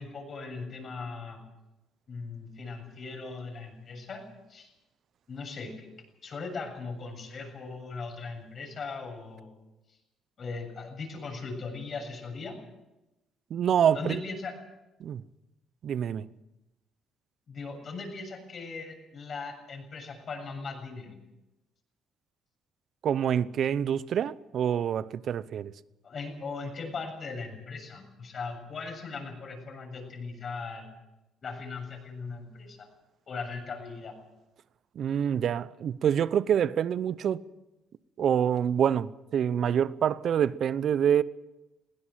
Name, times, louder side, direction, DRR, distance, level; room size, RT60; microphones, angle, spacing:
voice 1, 0.0-1.4 2.1-4.7 5.3-5.9 6.2-9.5 9.9-10.0 10.4-12.6 13.9-14.5 17.5-21.2 26.0-30.9 31.4-32.9 33.3-34.1, left 4 dB, 50° left, 7.4 m, -39 dB
voice 2, 13.5-14.2 15.0-15.2 15.8-16.3 23.0-25.7 35.0-37.4 38.2-41.2, right 9 dB, 60° right, 0.8 m, -26 dB
21.5 x 17.0 x 7.6 m
supercardioid pair, 60°, 0 cm